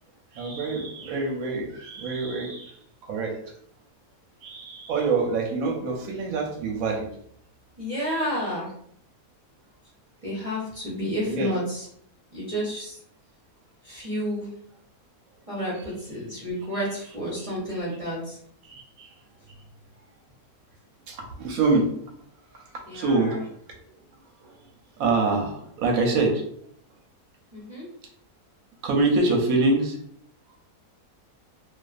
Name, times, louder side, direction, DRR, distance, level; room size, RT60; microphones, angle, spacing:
voice 1, 0.3-3.4 4.4-7.1 8.1-8.2 11.3-11.5 17.4-17.5 18.6-19.1 21.1-21.9 22.5-23.5 24.4-24.5 25.0-26.4 28.8-30.0, right 3 dB, 70° right, 1 dB, 0.9 m, -25 dB
voice 2, 7.8-8.7 10.2-11.8 12.3-13.0 13.8-14.5 15.5-18.4 22.9-23.4 27.5-27.9, equal, 35° right, -7 dB, 0.6 m, -31 dB
2.4 x 2.3 x 2.3 m, 0.66 s
omnidirectional pair, 1.7 m